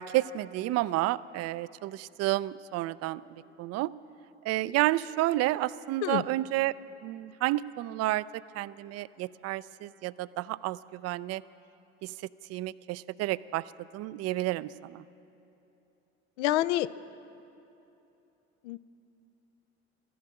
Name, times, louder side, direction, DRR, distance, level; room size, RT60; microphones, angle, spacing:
voice 1, 0.0-3.2 3.6-3.9 4.4-6.8 7.0-11.4 12.0-12.1 12.5-13.7 13.9-15.0, right 16 dB, 45° right, 18 dB, 0.4 m, -30 dB
voice 2, 16.4-16.9 18.6-18.8, left 15 dB, 75° left, 16 dB, 0.5 m, -27 dB
14.5 x 11.0 x 7.6 m, 2.9 s
hypercardioid pair, 60°, 36 cm